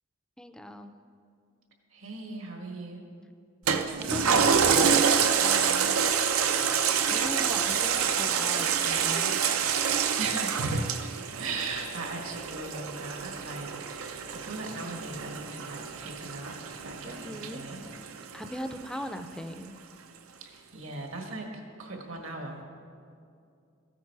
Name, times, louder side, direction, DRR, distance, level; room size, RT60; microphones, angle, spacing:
voice 1, 0.4-1.0 4.0-6.0 7.1-9.3 17.0-17.6 18.3-19.8, equal, 5° left, 8 dB, 0.4 m, -39 dB
voice 2, 1.9-3.0 10.2-10.9 11.3-17.8 20.4-21.5 21.8-22.6, right 3 dB, 70° right, 3 dB, 1.6 m, -39 dB
Toilet flush, 3.7-18.5 19.0-19.1, right 7 dB, 85° right, 0.7 m, -27 dB
14.5 x 9.9 x 4.7 m, 2.4 s
head